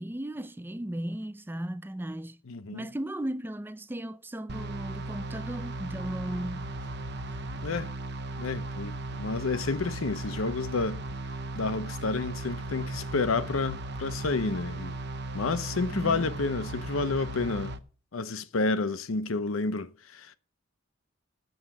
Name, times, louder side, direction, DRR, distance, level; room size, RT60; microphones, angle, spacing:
voice 1, 0.0-2.4 2.7-6.7 15.9-16.2, right 1 dB, 10° right, 0.4 m, -36 dB
voice 2, 2.5-2.9 7.6-7.9 8.4-11.0 11.6-15.0 15.3-17.7 18.1-20.4, left 3 dB, 85° left, 0.7 m, -30 dB
sound 1, 4.5-17.8, right 2 dB, 55° right, 0.8 m, -37 dB
8.0 x 7.1 x 7.6 m
head